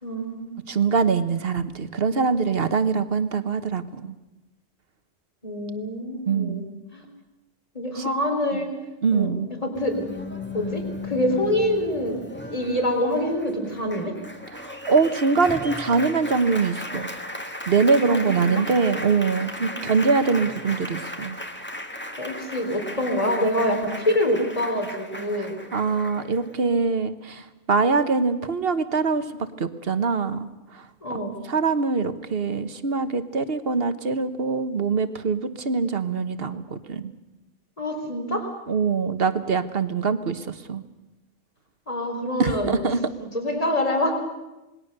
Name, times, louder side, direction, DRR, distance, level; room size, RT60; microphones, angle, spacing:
voice 1, 0.0-0.6 5.4-6.6 6.9-7.1 7.7-8.7 9.1-10.2 10.5-12.2 12.5-14.1 18.1-18.7 19.7-19.9 22.2-25.6 31.0-31.4 37.8-38.5 41.9-42.8 43.3-44.1, left 1 dB, 30° left, 3 dB, 3.8 m, -26 dB
voice 2, 0.7-4.1 6.3-6.7 8.0-8.1 9.0-9.5 14.5-17.1 17.7-21.4 25.4-29.2 29.6-30.8 31.1-31.2 31.5-37.1 38.7-40.8 42.4-43.0, right 4 dB, 55° right, 11 dB, 1.4 m, -23 dB
Applause, 9.7-26.7, left 1 dB, 10° left, 1.7 m, -36 dB
27.0 x 20.5 x 6.7 m, 1.0 s
omnidirectional pair, 1.2 m